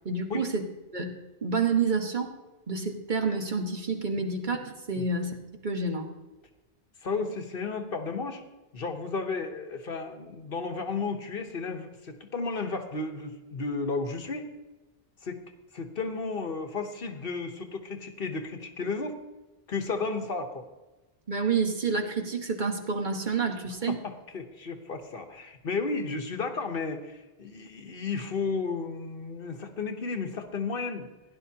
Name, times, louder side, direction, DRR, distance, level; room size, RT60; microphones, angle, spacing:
voice 1, 0.0-0.7 0.9-1.1 1.4-2.3 2.7-5.3 5.6-6.1 21.3-24.0, right 4 dB, 45° right, 3 dB, 1.4 m, -28 dB
voice 2, 7.0-8.4 8.7-14.5 15.2-15.4 15.7-19.2 19.7-20.7 23.9-31.1, left 4 dB, 55° left, 6 dB, 1.2 m, -33 dB
16.5 x 11.0 x 2.8 m, 1.1 s
omnidirectional pair, 1.2 m